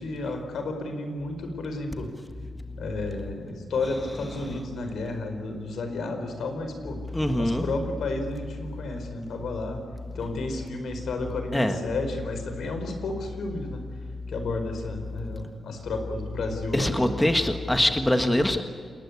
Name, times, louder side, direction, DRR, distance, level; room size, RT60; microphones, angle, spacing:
voice 1, 0.0-2.1 2.8-7.0 7.3-9.8 10.1-13.8 14.3-17.2, left 2 dB, 85° left, 6 dB, 4.6 m, -32 dB
voice 2, 7.1-7.7 11.5-11.8 15.1-15.4 16.7-18.6, left 1 dB, 10° left, 6 dB, 1.5 m, -24 dB
29.0 x 19.5 x 8.5 m, 2.2 s
wide cardioid pair, 125°, 0 cm